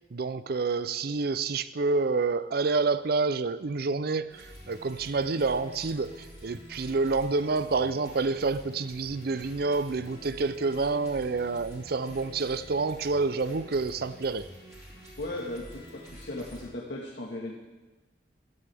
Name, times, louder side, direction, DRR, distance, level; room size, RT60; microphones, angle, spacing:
voice 1, 0.1-14.5, right 3 dB, 55° right, 15 dB, 0.5 m, -28 dB
sound 1, 4.3-16.7, equal, 15° right, 4.6 m, -48 dB
voice 2, 15.2-17.6, left 1 dB, 65° left, -3 dB, 1.6 m, -37 dB
17.5 x 13.5 x 3.5 m, 1.2 s
head